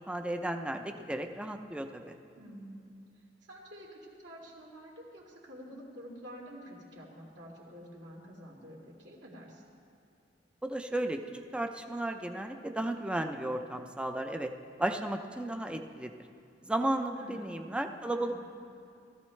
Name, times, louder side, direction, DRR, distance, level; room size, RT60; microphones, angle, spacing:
voice 1, 0.0-2.2 10.6-14.5 14.8-16.1 16.7-18.4, right 1 dB, 5° right, 5 dB, 0.5 m, -34 dB
voice 2, 2.4-2.8 3.5-9.6 17.1-17.8 18.1-18.4, equal, 70° right, -3 dB, 2.7 m, -49 dB
17.0 x 14.0 x 3.2 m, 2.6 s
head